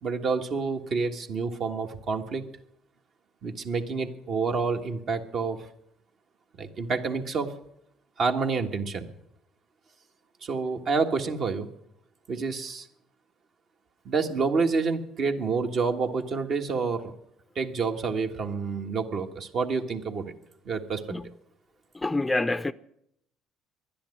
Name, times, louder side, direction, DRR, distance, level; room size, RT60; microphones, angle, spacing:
voice 1, 0.0-2.5 3.4-5.6 6.6-7.5 8.2-9.1 10.4-11.7 12.3-12.9 14.0-17.1 17.5-20.3 20.6-21.0, right 4 dB, 55° right, 1.5 m, -28 dB
voice 2, 21.9-22.7, left 2 dB, 15° left, 0.4 m, -27 dB
12.0 x 10.5 x 9.7 m
supercardioid pair, 80°, 0 cm